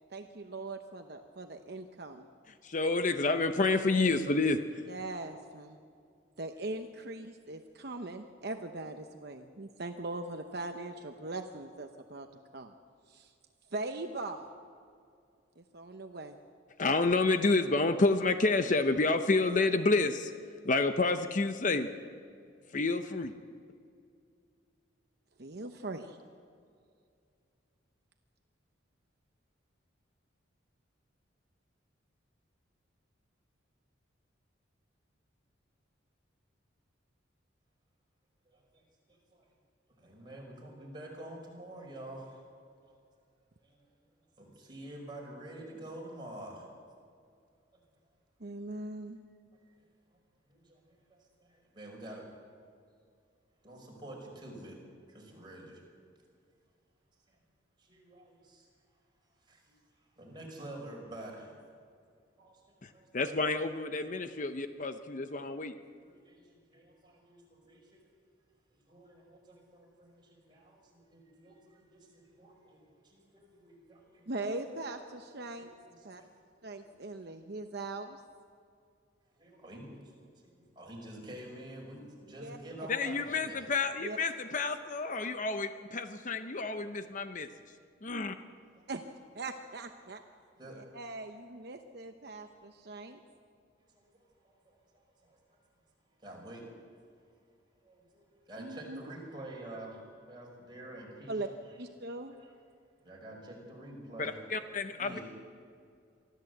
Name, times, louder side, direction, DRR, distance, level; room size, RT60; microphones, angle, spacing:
voice 1, 0.1-2.3 4.9-5.8 6.4-12.3 12.5-12.7 13.1-13.3 13.7-14.5 15.6-16.4 25.4-26.2 48.4-49.2 74.3-75.7 76.0-76.2 76.6-78.2 82.4-82.6 84.0-84.2 88.9-89.0 89.3-90.2 90.7-93.2 98.6-99.0 101.3-101.5 101.8-102.4, right 2 dB, 55° right, 5 dB, 0.9 m, -40 dB
voice 2, 2.6-4.6 16.8-20.3 20.6-21.9 22.7-23.3 62.8-65.7 82.9-87.5 88.0-88.4 104.2-105.2, left 3 dB, 40° left, 8 dB, 0.8 m, -29 dB
voice 3, 38.5-39.5 40.0-42.4 42.8-42.9 43.6-43.9 44.4-46.7 50.5-50.8 51.1-52.3 53.6-54.8 55.1-55.8 57.8-58.7 59.5-59.7 60.2-61.5 62.4-62.6 62.9-63.1 65.0-65.1 66.0-68.0 68.7-74.4 75.6-75.7 76.0-76.3 79.4-80.1 80.4-83.6 88.8-88.9 90.6-90.8 93.9-94.1 94.4-94.8 95.2-95.4 96.2-96.6 97.8-100.0 100.3-101.3 102.4-102.5 103.0-104.3 105.0-105.2, right 1 dB, 25° right, -1 dB, 5.3 m, -48 dB
24.0 x 14.0 x 7.9 m, 2.3 s
head